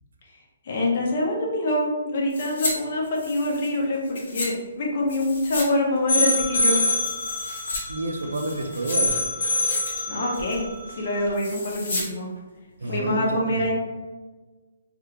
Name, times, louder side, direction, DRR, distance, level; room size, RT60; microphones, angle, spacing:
voice 1, 0.6-6.8 10.1-12.3 12.8-13.7, left 1 dB, 35° left, -1 dB, 0.6 m, -25 dB
sound 1, 2.3-2.7 3.0-4.5 5.1-5.7 6.0-6.1 6.5-7.8 8.2-9.2 9.5-10.0 10.3-10.6 11.3-12.1 12.4-12.5, left 2 dB, 55° left, 1.3 m, -33 dB
sound 2, 6.1-11.3, left 1 dB, 75° left, 0.8 m, -26 dB
voice 2, 7.9-9.2 12.8-13.6, right 2 dB, 80° right, 5 dB, 0.5 m, -29 dB
3.4 x 2.4 x 2.8 m, 1.3 s
hypercardioid pair, 175°, 0 cm